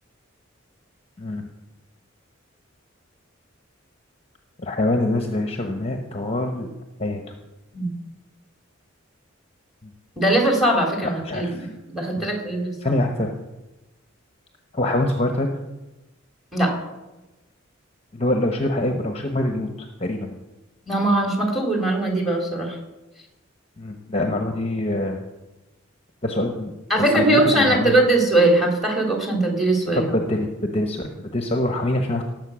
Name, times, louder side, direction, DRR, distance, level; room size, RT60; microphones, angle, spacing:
voice 1, 1.2-1.5 4.6-6.7 7.0-7.3 9.8-9.9 11.2-11.7 12.2-12.3 12.8-13.3 14.7-15.5 18.1-19.7 20.0-20.3 23.8-25.2 26.2-26.7 27.2-27.9 30.0-32.2, left 1 dB, 30° left, 4 dB, 1.1 m, -24 dB
voice 2, 10.2-12.7 16.5-16.7 20.9-22.8 26.9-30.1, right 1 dB, ahead, 1 dB, 3.2 m, -20 dB
18.0 x 7.9 x 6.3 m, 1.1 s
head